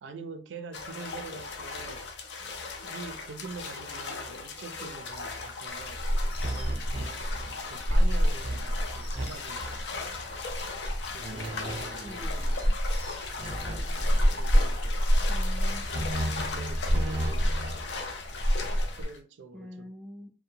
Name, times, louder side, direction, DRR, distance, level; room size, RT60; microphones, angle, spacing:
voice 1, 0.0-2.1 2.8-6.0 7.7-10.1 11.1-12.2 14.3-15.1 15.9-16.1 16.5-17.9 18.9-19.9, right 4 dB, 75° right, 0.4 m, -44 dB
sound 1, 0.7-19.2, left 4 dB, 70° left, 0.5 m, -38 dB
sound 2, 5.7-19.1, equal, 30° left, 0.7 m, -29 dB
sound 3, 6.4-7.6 8.0-8.1 8.4-9.2 9.5-9.8 11.2-12.3 13.4-14.4 15.9-17.9, right 1 dB, 30° right, 0.7 m, -35 dB
voice 2, 12.0-12.8 15.3-16.3 19.5-20.3, left 1 dB, ahead, 0.3 m, -45 dB
2.7 x 2.1 x 2.6 m
head